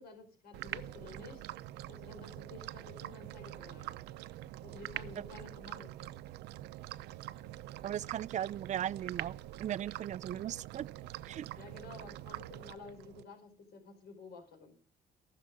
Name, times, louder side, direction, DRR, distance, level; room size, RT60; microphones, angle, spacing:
voice 1, 0.0-4.0 4.6-6.1 11.6-14.8, left 3 dB, 65° left, 4.7 m, -52 dB
sound 1, 0.5-13.2, right 15 dB, 85° right, 0.7 m, -45 dB
voice 2, 7.8-10.9 11.2-11.5, right 11 dB, 45° right, 0.5 m, -37 dB
19.0 x 6.7 x 5.2 m
cardioid pair, 110°, 17 cm